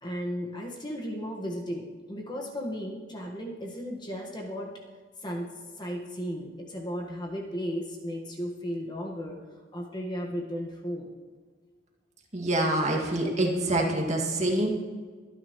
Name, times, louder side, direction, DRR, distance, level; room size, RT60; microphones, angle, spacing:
voice 1, 0.0-4.7 5.2-5.5 5.8-9.4 9.7-11.1, equal, 25° left, 0 dB, 1.5 m, -35 dB
voice 2, 12.3-14.7, right 1 dB, 35° right, -1 dB, 2.2 m, -26 dB
24.0 x 10.0 x 3.1 m, 1.5 s
head